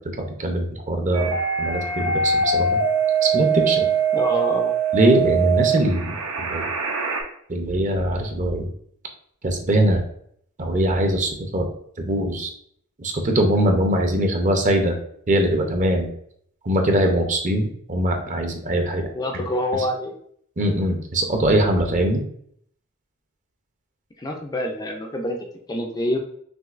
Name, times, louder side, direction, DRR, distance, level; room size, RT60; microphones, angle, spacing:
voice 1, 0.2-2.8 3.2-3.9 4.9-6.7 7.5-8.7 9.4-10.0 10.6-11.6 12.0-12.5 13.0-14.9 15.3-16.1 16.6-19.1 19.3-19.4 20.6-22.2, right 1 dB, 35° right, 3 dB, 0.6 m, -22 dB
sound 1, 1.1-7.2, right 5 dB, 70° right, 0.8 m, -22 dB
voice 2, 4.1-4.7 19.1-20.1 24.2-26.2, left 1 dB, 20° left, 1 dB, 0.4 m, -26 dB
6.2 x 2.7 x 2.5 m, 0.66 s
head